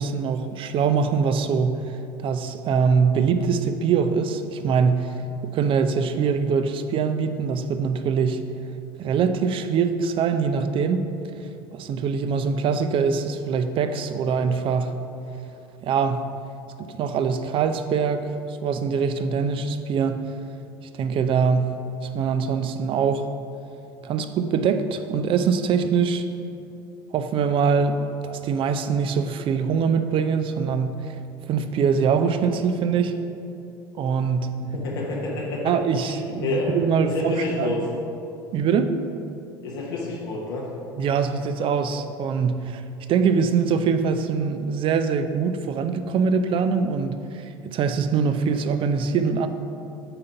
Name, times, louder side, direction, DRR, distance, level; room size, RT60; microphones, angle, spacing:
voice 1, 0.0-1.9 2.2-5.1 5.5-8.4 9.0-11.1 11.7-14.9 15.8-16.3 16.8-20.2 20.9-21.7 22.0-23.3 24.0-26.3 27.1-31.2 31.5-33.2 34.0-34.5 35.6-37.7 38.5-38.9 41.0-42.8 43.1-49.5, right 6 dB, 50° right, 9 dB, 0.5 m, -23 dB
voice 2, 34.6-35.7 36.0-36.1 36.4-36.7 37.0-37.8 39.6-40.7, left 2 dB, 80° left, -4 dB, 1.1 m, -28 dB
7.8 x 3.8 x 5.7 m, 2.7 s
hypercardioid pair, 75°, 12 cm